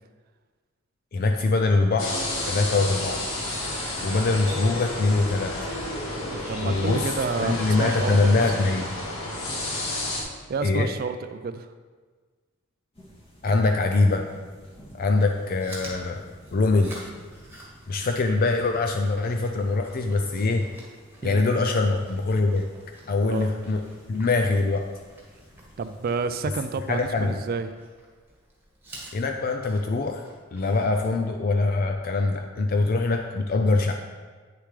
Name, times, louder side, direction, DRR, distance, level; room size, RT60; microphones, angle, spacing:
voice 1, 1.1-3.2 4.0-5.5 6.6-8.9 10.6-10.9 13.4-14.2 15.0-16.2 16.5-17.1 17.9-20.6 21.2-22.6 23.1-23.8 24.1-24.8 26.9-27.4 29.1-30.2 30.5-34.0, left 3 dB, 45° left, 4 dB, 0.4 m, -23 dB
sound 1, 2.0-10.2, left 1 dB, 75° left, 1.7 m, -31 dB
voice 2, 6.5-8.5 10.5-11.7 21.2-21.5 23.3-23.5 25.8-27.7, right 4 dB, 45° right, 10 dB, 0.3 m, -30 dB
sound 2, 12.9-27.5, equal, 30° left, 1.7 m, -52 dB
Chewing mastication, 15.3-31.2, right 1 dB, 10° right, 1.6 m, -49 dB
9.1 x 6.8 x 3.3 m, 1.5 s
head